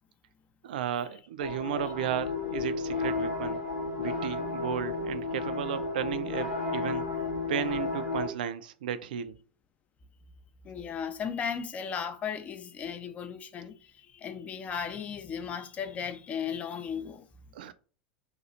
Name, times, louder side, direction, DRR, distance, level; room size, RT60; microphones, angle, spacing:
voice 1, 0.6-3.6 4.0-7.1 7.5-9.4 17.5-17.7, right 10 dB, 60° right, 0.3 m, -34 dB
sound 1, 1.4-8.3, left 3 dB, 70° left, 0.9 m, -32 dB
voice 2, 10.6-17.3, left 7 dB, 25° left, 0.4 m, -36 dB
2.9 x 2.3 x 3.8 m
figure-of-eight pair, 85°, 5 cm